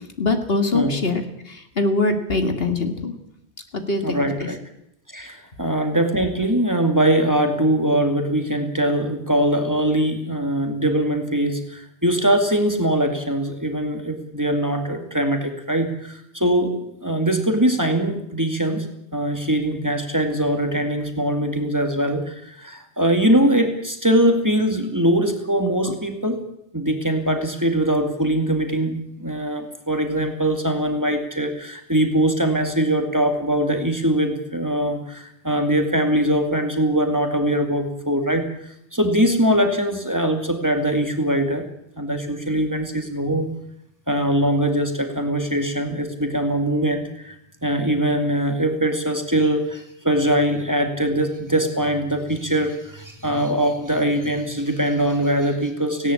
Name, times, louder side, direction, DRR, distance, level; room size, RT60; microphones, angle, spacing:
voice 1, 0.2-3.1 3.7-4.3, left 3 dB, 65° left, 6 dB, 2.3 m, -23 dB
voice 2, 4.0-4.6 5.1-18.9 19.1-26.4 26.7-38.5 38.9-41.7 42.0-43.5 44.1-47.4 47.6-56.1, right 1 dB, 15° right, 5 dB, 2.3 m, -22 dB
18.5 x 17.5 x 8.5 m, 0.77 s
omnidirectional pair, 1.1 m